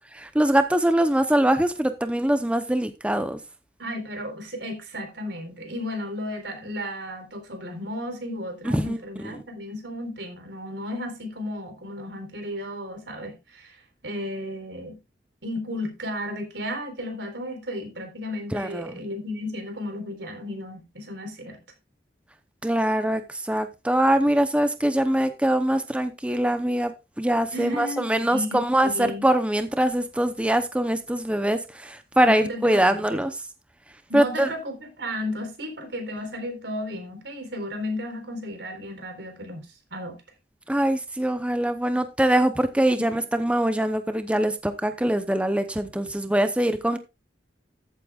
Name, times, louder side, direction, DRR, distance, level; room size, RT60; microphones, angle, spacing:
voice 1, 0.2-3.4 8.6-9.0 9.2-9.4 18.5-18.9 22.6-33.3 34.1-34.5 40.7-47.0, right 1 dB, 5° right, 0.7 m, -23 dB
voice 2, 3.8-15.0 15.4-21.6 27.5-28.0 28.3-29.2 32.2-33.2 34.1-40.2 43.1-43.2, left 1 dB, 85° right, 3.9 m, -34 dB
14.0 x 8.6 x 2.4 m
head